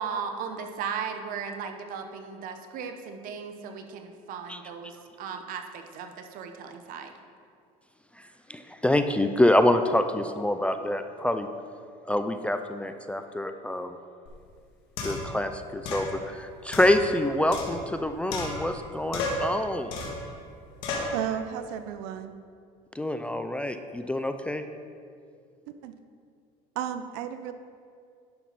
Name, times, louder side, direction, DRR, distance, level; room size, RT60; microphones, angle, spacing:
voice 1, 0.0-7.1, right 6 dB, 60° right, 6 dB, 0.9 m, -36 dB
voice 2, 8.5-11.5 12.1-14.0 15.0-19.9 23.0-24.6, left 1 dB, 5° left, 8 dB, 0.3 m, -26 dB
sound 1, 14.3-14.4 15.0-15.4 15.9-16.1 16.7-18.0 18.3-18.8 19.1-19.5 19.9-20.3 20.8-21.2, left 2 dB, 80° left, 1.8 m, -33 dB
voice 3, 21.1-22.4 25.8-25.9 26.8-27.5, right 10 dB, 80° right, 10 dB, 0.5 m, -33 dB
11.0 x 5.9 x 4.1 m, 2.3 s
cardioid pair, 120°, 16 cm